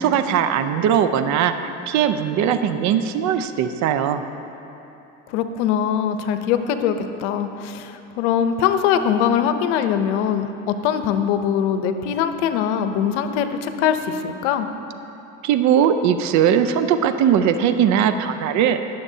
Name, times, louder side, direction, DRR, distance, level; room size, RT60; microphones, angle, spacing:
voice 1, 0.0-4.2 15.4-18.9, right 8 dB, 55° right, 10 dB, 0.6 m, -19 dB
voice 2, 5.3-14.7, left 8 dB, 80° left, 9 dB, 0.7 m, -22 dB
19.0 x 6.7 x 2.8 m, 3.0 s
supercardioid pair, 95°, 35 cm